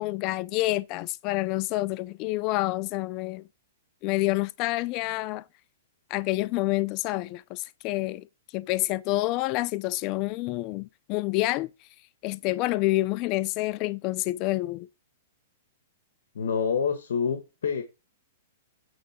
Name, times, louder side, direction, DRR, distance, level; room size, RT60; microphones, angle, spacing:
voice 1, 0.0-3.4 4.0-5.4 6.1-8.3 8.5-11.7 12.2-14.9, left 19 dB, 35° left, 0.4 m, -28 dB
voice 2, 16.3-17.8, left 6 dB, 80° left, 1.5 m, -27 dB
8.7 x 3.9 x 6.0 m
hypercardioid pair, 140°, 0 cm